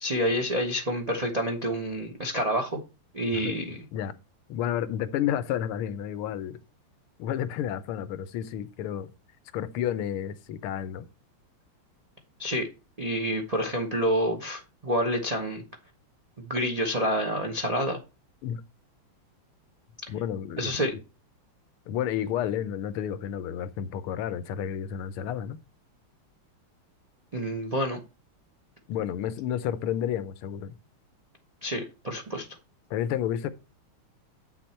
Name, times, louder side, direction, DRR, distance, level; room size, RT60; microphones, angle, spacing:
voice 1, 0.0-2.8 3.1-3.8 12.4-12.7 13.0-15.6 16.4-18.0 20.6-20.9 27.3-28.0 31.6-32.5, equal, 30° right, 0.7 m, -28 dB
voice 2, 3.3-4.1 4.5-6.6 7.2-9.1 9.5-11.1 18.4-18.6 20.1-20.9 21.9-25.6 28.9-30.8 32.9-33.5, left 10 dB, 90° left, 1.6 m, -31 dB
8.0 x 6.5 x 4.4 m
omnidirectional pair, 2.3 m